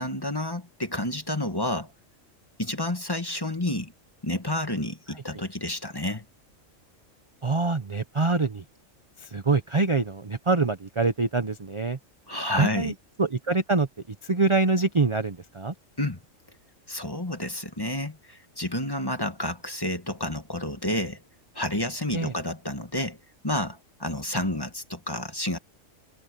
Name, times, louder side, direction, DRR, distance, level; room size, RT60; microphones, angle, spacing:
voice 1, 0.0-1.9 2.6-3.9 4.2-6.2 12.3-12.9 16.0-16.2 16.9-21.2 21.5-23.2 23.4-25.6, left 1 dB, 20° left, 1.7 m, -30 dB
voice 2, 7.4-8.6 9.3-12.0 12.6-12.9 13.2-13.9 14.2-15.7 22.1-22.3, right 3 dB, 25° right, 0.8 m, -24 dB
omnidirectional pair, 1.3 m